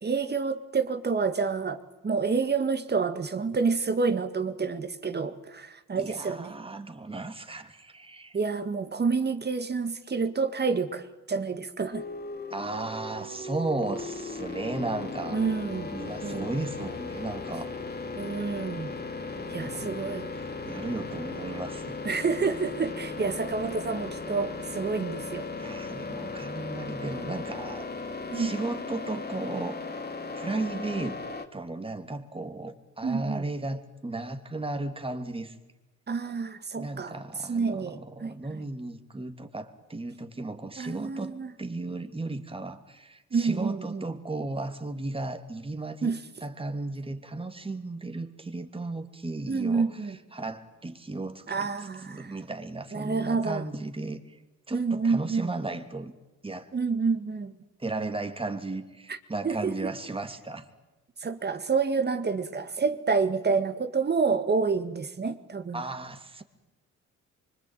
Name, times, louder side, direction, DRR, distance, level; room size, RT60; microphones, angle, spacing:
voice 1, 0.0-6.5 8.3-12.0 15.3-15.9 16.2-16.5 18.2-18.9 19.5-20.3 22.0-25.5 27.0-27.1 28.3-28.5 33.0-33.4 36.1-37.2 37.5-38.3 40.8-41.5 43.3-44.1 46.0-46.2 49.5-50.2 51.5-52.3 52.9-53.6 54.7-55.5 56.7-57.5 59.1-59.2 59.4-59.9 61.2-65.8, right 5 dB, 35° right, 9 dB, 1.9 m, -28 dB
voice 2, 6.0-8.4 12.5-15.4 15.9-17.7 19.4-22.0 25.6-27.9 28.3-29.8 30.3-31.2 31.5-35.6 36.8-46.1 46.4-49.9 50.3-51.7 52.1-54.4 54.7-56.1 56.4-56.7 57.8-60.7 65.7-66.4, right 2 dB, 20° right, 6 dB, 2.9 m, -35 dB
sound 1, 11.9-31.5, left 3 dB, 30° left, 2.7 m, -37 dB
25.5 x 24.5 x 9.1 m, 1.0 s
cardioid pair, 90°, 30 cm